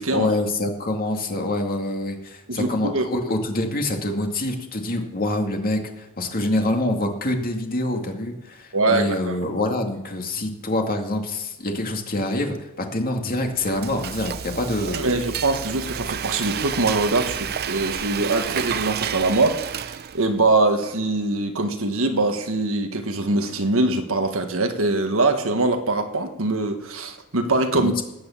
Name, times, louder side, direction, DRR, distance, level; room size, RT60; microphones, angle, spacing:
voice 1, 0.1-15.1 27.7-28.0, left 1 dB, 40° left, 3 dB, 2.2 m, -26 dB
voice 2, 2.5-3.1 8.7-9.4 14.9-27.9, right 2 dB, 65° right, 6 dB, 1.6 m, -23 dB
Frying (food), 13.3-20.4, right 8 dB, 45° right, 0.5 m, -30 dB
19.0 x 9.0 x 7.2 m, 0.95 s
head